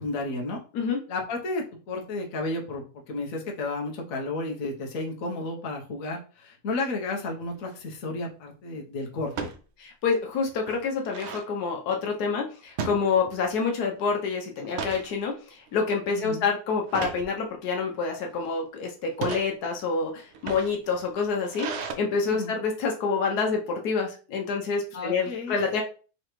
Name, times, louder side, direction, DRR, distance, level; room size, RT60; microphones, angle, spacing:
voice 1, 0.0-0.6 1.1-9.5 16.1-16.4 22.3-22.5 24.9-25.7, left 2 dB, 65° left, 1 dB, 1.2 m, -32 dB
sound 1, 7.5-7.9 9.3-9.6 10.1-10.2 10.5-11.5 12.8-13.6 13.9-14.2 14.6-15.1 15.7-16.0 16.9-17.3 18.0-18.5 19.1-19.5 20.3-21.9, right 5 dB, 65° right, 0.7 m, -35 dB
voice 2, 9.8-25.8, left 5 dB, 85° left, 2 dB, 1.3 m, -27 dB
3.8 x 3.2 x 3.0 m, 0.37 s
omnidirectional pair, 1.6 m